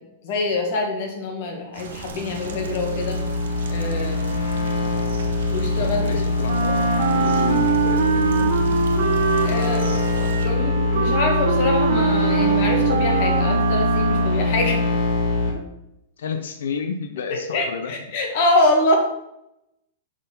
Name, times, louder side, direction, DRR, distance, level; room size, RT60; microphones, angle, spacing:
voice 1, 0.2-3.2 3.7-4.4 5.5-6.2 9.4-9.9 10.1-14.8 17.3-19.0, left 2 dB, 40° left, 2 dB, 1.6 m, -25 dB
sound 1, 1.7-10.5, right 4 dB, 85° right, 1.3 m, -38 dB
sound 2, 2.1-15.5, left 2 dB, 60° left, 1.9 m, -23 dB
voice 2, 5.8-6.8 7.1-8.5 16.2-18.0, left 6 dB, 90° left, 6 dB, 0.7 m, -31 dB
Wind instrument woodwind instrument, 6.4-14.6, right 7 dB, 60° right, 0.9 m, -23 dB
6.1 x 4.5 x 5.4 m, 0.83 s
supercardioid pair, 175°, 0 cm